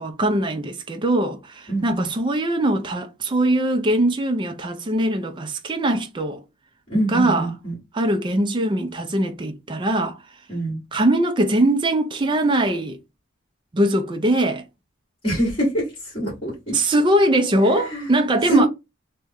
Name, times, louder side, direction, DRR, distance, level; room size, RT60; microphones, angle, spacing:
voice 1, 0.0-6.4 7.1-7.5 7.9-10.2 10.9-13.0 13.7-14.6 16.7-18.7, right 1 dB, 25° right, 0.4 m, -21 dB
voice 2, 1.7-2.1 6.9-7.7 10.5-10.8 15.2-16.8 17.7-18.1 18.5-18.7, equal, 30° left, 1.6 m, -24 dB
3.0 x 2.2 x 3.5 m
head